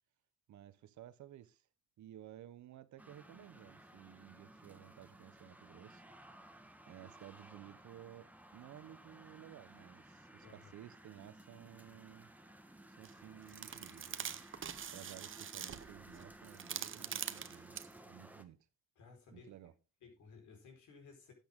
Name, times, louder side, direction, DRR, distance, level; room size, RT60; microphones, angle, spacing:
voice 1, 0.5-1.7 2.0-6.0 6.9-12.3 13.0-14.4 14.9-18.7 19.3-19.7, right 12 dB, 70° right, 1.0 m, -55 dB
sound 1, 3.0-18.4, right 1 dB, 5° right, 1.3 m, -57 dB
voice 2, 10.4-10.7 19.0-19.5 20.0-21.3, left 5 dB, 75° left, 4.7 m, -57 dB
sound 2, 13.0-13.1 13.5-17.9, right 8 dB, 40° right, 0.8 m, -44 dB
12.0 x 8.6 x 3.7 m
cardioid pair, 90°, 30 cm